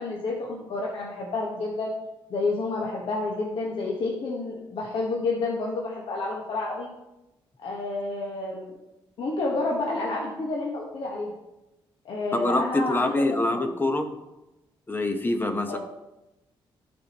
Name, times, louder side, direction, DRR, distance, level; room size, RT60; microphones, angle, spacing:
voice 1, 0.0-1.9 2.3-6.9 7.6-8.8 9.2-11.3 12.0-13.6 15.7-15.8, left 3 dB, 70° left, -3 dB, 1.4 m, -29 dB
voice 2, 12.3-14.1 14.9-15.8, left 2 dB, 20° left, 6 dB, 1.1 m, -25 dB
12.5 x 5.1 x 3.0 m, 0.97 s
cardioid pair, 85°, 9 cm